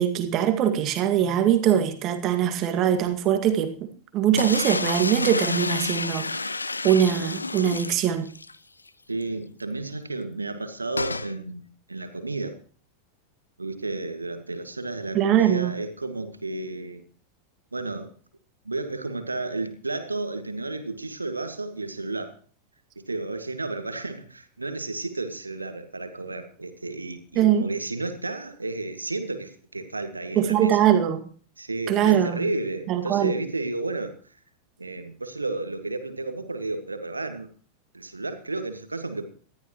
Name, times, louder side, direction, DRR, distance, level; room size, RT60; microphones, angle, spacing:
voice 1, 0.0-3.7 4.1-6.6 6.8-8.3 15.1-15.7 27.4-27.7 30.4-31.3 31.9-32.4 32.9-33.3, right 10 dB, 35° right, 2.1 m, -22 dB
sound 1, 4.4-8.6 8.9-9.0 9.2-9.3 11.0-11.3, left 3 dB, 80° left, 0.5 m, -29 dB
voice 2, 9.1-12.6 13.6-17.0 17.7-18.1 18.7-22.4 23.0-30.9 31.6-34.2 34.8-37.5 37.9-39.3, right 2 dB, 80° right, 1.8 m, -32 dB
19.5 x 13.5 x 3.1 m
figure-of-eight pair, 90°, 0 cm